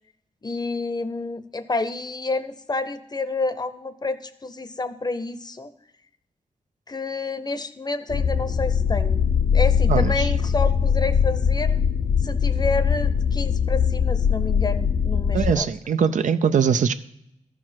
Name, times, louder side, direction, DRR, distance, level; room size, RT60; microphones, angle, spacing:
voice 1, 0.4-5.7 6.9-11.7 12.2-15.7, left 3 dB, 35° left, 12 dB, 0.7 m, -29 dB
sound 1, 8.1-15.5, left 7 dB, 80° left, 0.6 m, -21 dB
voice 2, 9.9-10.3 15.3-16.9, right 7 dB, 85° right, 11 dB, 0.5 m, -21 dB
13.0 x 4.8 x 5.8 m, 0.76 s
wide cardioid pair, 75°, 13 cm